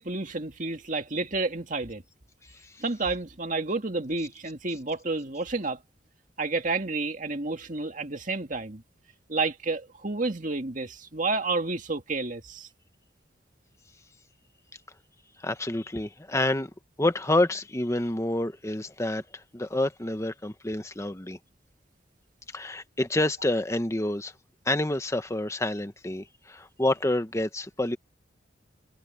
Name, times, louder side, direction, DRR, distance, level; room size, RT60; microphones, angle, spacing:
voice 1, 0.0-2.0 2.8-5.8 6.4-8.8 9.3-12.7, right 3 dB, 45° right, 2.2 m, -30 dB
voice 2, 15.4-16.7 17.0-21.4 22.5-24.3 24.6-28.0, left 1 dB, 15° left, 1.1 m, -28 dB
head